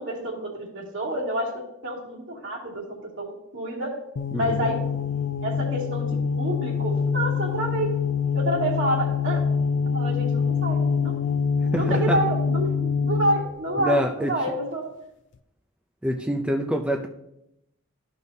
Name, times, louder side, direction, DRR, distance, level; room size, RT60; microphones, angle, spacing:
voice 1, 0.0-3.9 4.3-4.8 5.4-7.9 8.3-9.4 9.9-11.1 11.7-14.9, right 1 dB, 65° right, -4 dB, 2.6 m, -28 dB
sound 1, 4.2-13.5, left 6 dB, 60° left, 0.4 m, -25 dB
voice 2, 11.7-12.2 13.8-14.3 16.0-17.1, equal, 5° right, 3 dB, 0.4 m, -25 dB
13.5 x 5.4 x 2.7 m, 0.83 s
head